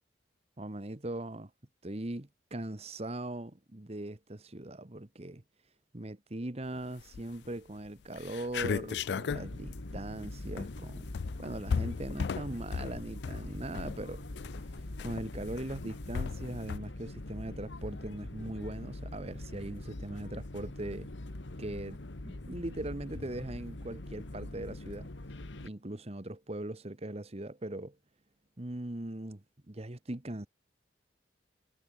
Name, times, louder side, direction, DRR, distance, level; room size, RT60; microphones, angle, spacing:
voice 1, 0.6-1.5 1.8-5.4 5.9-11.1 11.4-21.1 21.6-22.0 22.2-25.1 25.6-28.0 28.6-30.5, right 1 dB, 35° right, 1.2 m, -40 dB
sound 1, 7.0-7.5 7.9-8.0 8.2-16.8, left 6 dB, 60° left, 0.3 m, -36 dB
sound 2, 9.3-25.7, left 1 dB, 80° left, 1.5 m, -43 dB
head